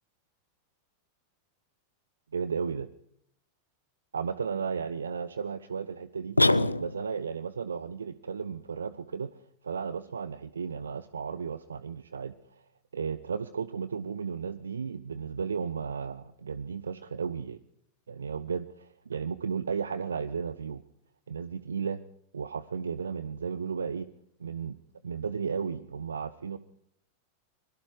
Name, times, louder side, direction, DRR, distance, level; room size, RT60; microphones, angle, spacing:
voice 1, 2.3-2.9 4.1-6.4 6.8-9.3 9.6-12.3 12.9-17.6 18.1-20.8 21.3-22.0 22.3-24.1 24.4-24.8 25.0-26.6, right 6 dB, 70° right, 15 dB, 0.9 m, -34 dB
sound 1, 6.4-7.3, left 2 dB, 85° left, 0.8 m, -24 dB
24.5 x 22.5 x 4.7 m, 0.70 s
figure-of-eight pair, 90°, 0 cm